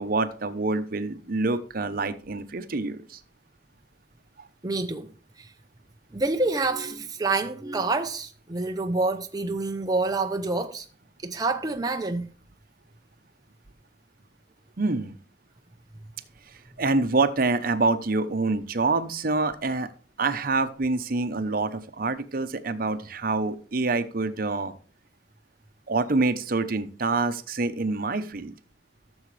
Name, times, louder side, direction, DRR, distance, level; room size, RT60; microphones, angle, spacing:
voice 1, 0.0-3.2 4.4-4.5 14.8-15.2 16.5-19.9 20.2-24.7 25.9-28.5, right 3 dB, 55° right, 0.8 m, -26 dB
voice 2, 4.6-5.1 5.4-5.5 6.1-10.9 11.2-12.3, right 3 dB, 20° right, 0.6 m, -27 dB
14.0 x 7.1 x 3.2 m
head